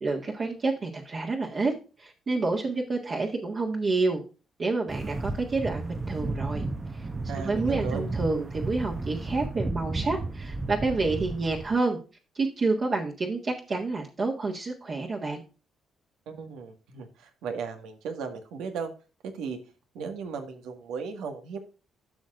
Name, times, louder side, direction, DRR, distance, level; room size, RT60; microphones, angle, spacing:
voice 1, 0.0-1.7 2.0-4.2 4.6-6.6 6.9-7.1 7.4-12.0 12.4-15.4, right 3 dB, 45° right, -1 dB, 1.7 m, -28 dB
sound 1, 4.9-11.8, right 2 dB, 25° right, 0.8 m, -33 dB
voice 2, 7.3-8.1 16.3-18.9 19.3-19.6 19.9-21.6, right 5 dB, 90° right, 5 dB, 1.7 m, -36 dB
12.5 x 6.2 x 2.5 m, 0.33 s
cardioid pair, 90°, 0 cm